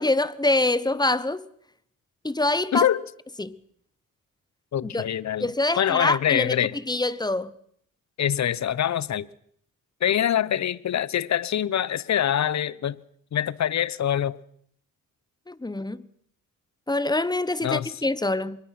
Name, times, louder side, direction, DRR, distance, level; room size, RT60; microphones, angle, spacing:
voice 1, 0.0-1.5 2.2-2.9 3.4-3.6 4.8-5.1 5.4-6.6 6.9-7.5 15.5-16.0 16.9-18.6, left 2 dB, 10° left, 1.0 m, -25 dB
voice 2, 4.7-5.5 5.8-6.7 8.2-9.3 10.0-13.0 13.3-14.4 17.6-17.9, left 10 dB, 55° left, 0.9 m, -24 dB
24.5 x 21.5 x 5.9 m
cardioid pair, 95°, 34 cm